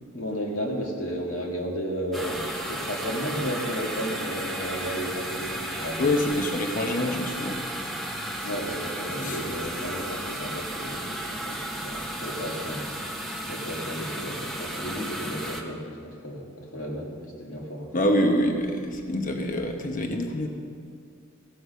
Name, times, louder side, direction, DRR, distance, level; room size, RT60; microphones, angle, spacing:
voice 1, 0.1-6.1 8.4-12.9 13.4-17.9, equal, 85° left, -2 dB, 2.3 m, -33 dB
sound 1, 2.1-15.6, right 1 dB, ahead, 1.0 m, -34 dB
voice 2, 6.0-7.6 9.2-9.4 17.9-20.5, left 1 dB, 40° left, 3 dB, 1.0 m, -25 dB
16.5 x 6.6 x 5.4 m, 2.3 s
head